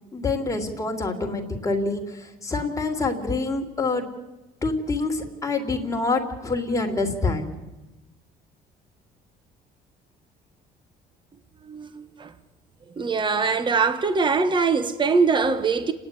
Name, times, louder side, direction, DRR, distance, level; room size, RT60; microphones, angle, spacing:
voice 1, 0.1-4.1 4.6-7.5, left 3 dB, 20° left, 3.1 m, -26 dB
voice 2, 11.6-12.3 13.0-15.9, right 4 dB, 30° right, 1.4 m, -22 dB
29.0 x 9.9 x 10.0 m
cardioid pair, 110°, 17 cm